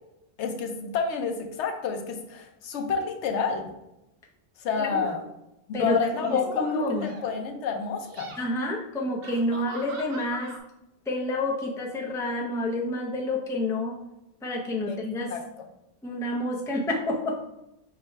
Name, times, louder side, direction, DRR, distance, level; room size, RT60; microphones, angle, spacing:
voice 1, 0.4-3.7 4.6-5.2 5.7-6.6 7.0-8.3 14.9-15.0 15.3-15.7, left 5 dB, 90° left, 4 dB, 1.0 m, -29 dB
sound 1, 5.0-5.3 6.1-7.5 8.0-8.4 9.2-10.6, right 3 dB, 65° right, 0.9 m, -42 dB
voice 2, 5.7-7.0 8.4-10.5 11.1-14.0 14.4-15.3 16.0-17.4, left 2 dB, 5° left, -2 dB, 0.4 m, -28 dB
4.9 x 2.2 x 4.4 m, 0.89 s
omnidirectional pair, 1.1 m